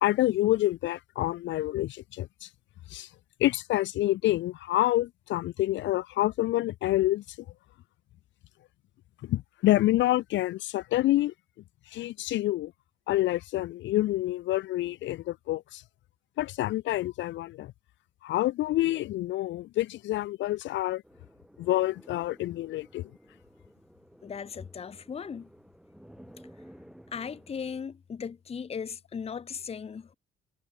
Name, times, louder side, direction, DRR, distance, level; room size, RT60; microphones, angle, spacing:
voice 1, 0.0-2.5 2.9-3.1 3.4-7.2 9.2-11.3 11.9-12.7 13.1-15.8 16.4-17.7 18.2-21.0 21.6-23.1, left 15 dB, 70° left, 0.4 m, -27 dB
sound 1, 21.0-27.9, equal, 5° right, 5.6 m, -54 dB
voice 2, 24.2-25.5 27.1-30.1, left 6 dB, 30° left, 0.7 m, -37 dB
cardioid pair, 90°, 20 cm